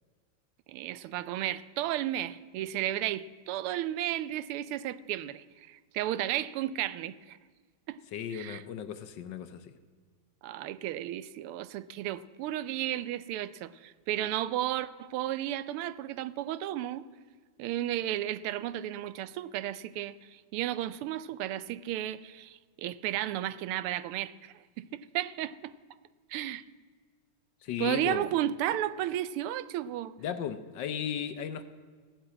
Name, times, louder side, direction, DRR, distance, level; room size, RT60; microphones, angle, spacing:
voice 1, 0.7-7.4 7.9-8.0 8.3-8.6 10.4-17.0 17.6-25.7 26.3-26.6 27.8-30.1, right 13 dB, 85° right, 1.5 m, -33 dB
voice 2, 8.1-9.8 27.6-28.2 30.2-31.6, left 8 dB, 65° left, 1.2 m, -35 dB
16.0 x 8.9 x 8.6 m
omnidirectional pair, 2.4 m